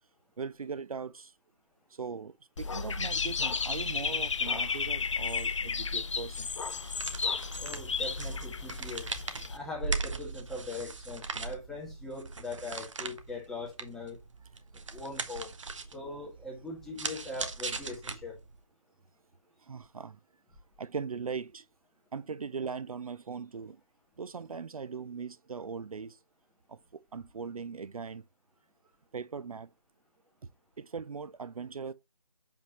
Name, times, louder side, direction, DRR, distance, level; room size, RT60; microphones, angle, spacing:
voice 1, 0.4-1.3 1.9-6.5 19.6-20.2 20.8-21.7 22.1-23.8 24.2-26.2 26.7-28.3 29.1-29.7 30.8-31.9, right 5 dB, 75° right, 0.6 m, -39 dB
Dog / Bird, 2.6-9.6, left 5 dB, 55° left, 0.7 m, -33 dB
sound 1, 6.7-18.6, right 4 dB, 55° right, 1.3 m, -39 dB
voice 2, 7.6-9.1 9.5-14.2 14.9-15.5 15.9-18.3, left 3 dB, ahead, 1.8 m, -41 dB
7.4 x 5.2 x 3.0 m
figure-of-eight pair, 160°, 19 cm